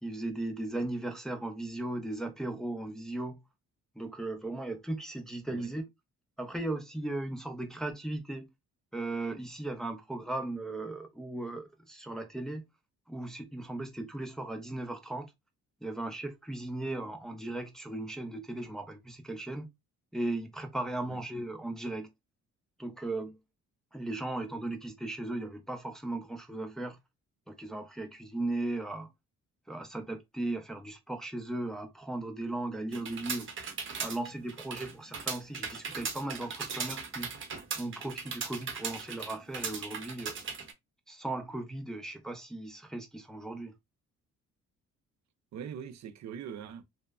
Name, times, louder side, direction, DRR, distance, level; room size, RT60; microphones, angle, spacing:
voice 1, 0.0-3.4 4.0-5.8 6.4-8.5 8.9-12.6 13.1-15.3 15.8-19.7 20.1-22.1 22.8-23.4 23.9-27.0 27.5-29.1 29.7-33.5 34.0-37.3 37.7-40.3 41.1-43.7, right 2 dB, ahead, 0.5 m, -37 dB
sound 1, 32.9-40.7, right 5 dB, 40° right, 0.8 m, -38 dB
voice 2, 45.5-46.8, right 8 dB, 65° right, 0.5 m, -42 dB
3.0 x 2.0 x 2.3 m
cardioid pair, 90°, 30 cm